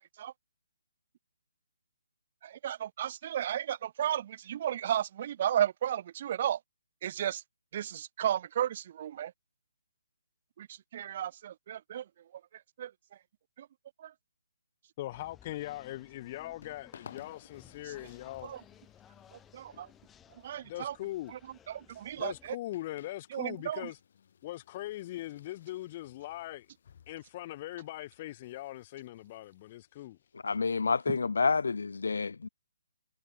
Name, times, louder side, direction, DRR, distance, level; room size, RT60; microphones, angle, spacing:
voice 1, 2.4-6.6 7.0-7.4 7.7-9.3 10.6-10.7 10.9-12.0 12.8-12.9 18.4-18.6 19.5-19.9 20.4-20.9 21.7-22.3 23.3-23.8, right 10 dB, 30° right, 0.5 m, -33 dB
voice 2, 15.0-18.5 20.6-21.3 22.2-24.0 24.4-26.7 27.1-30.2, left 15 dB, 25° left, 1.3 m, -41 dB
sound 1, 15.1-22.5, left 9 dB, 10° left, 4.8 m, -59 dB
sound 2, 15.9-31.0, left 8 dB, 40° left, 4.7 m, -59 dB
voice 3, 30.4-32.5, left 4 dB, 75° left, 0.4 m, -29 dB
hypercardioid pair, 170°, 0 cm